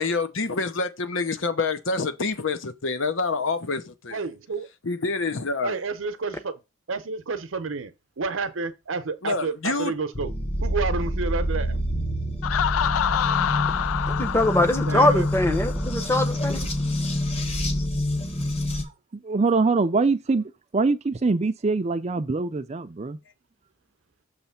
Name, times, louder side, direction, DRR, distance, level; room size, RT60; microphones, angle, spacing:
voice 1, 0.0-4.2 4.8-5.8 9.2-9.9, left 3 dB, 70° left, 0.8 m, -27 dB
voice 2, 4.1-4.7 5.6-6.5 6.9-10.3 10.6-11.9 14.8-15.2, right 4 dB, 75° right, 0.8 m, -30 dB
sound 1, 10.1-18.8, equal, 30° left, 1.1 m, -27 dB
Laughter, 12.4-16.1, left 10 dB, 85° left, 0.3 m, -27 dB
voice 3, 14.2-16.6, left 1 dB, 10° left, 0.7 m, -22 dB
voice 4, 18.7-23.2, right 3 dB, 30° right, 0.4 m, -24 dB
6.7 x 3.1 x 5.7 m
head